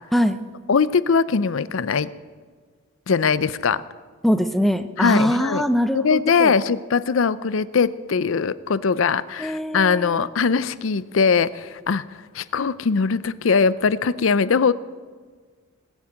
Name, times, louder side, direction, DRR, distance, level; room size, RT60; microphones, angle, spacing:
voice 1, 0.7-2.1 3.1-3.8 5.0-5.6 5.9-12.0 12.3-14.7, left 5 dB, 70° left, 17 dB, 0.5 m, -21 dB
voice 2, 4.2-6.5 9.4-10.2, equal, ahead, 9 dB, 0.6 m, -22 dB
19.5 x 7.3 x 8.7 m, 1.5 s
head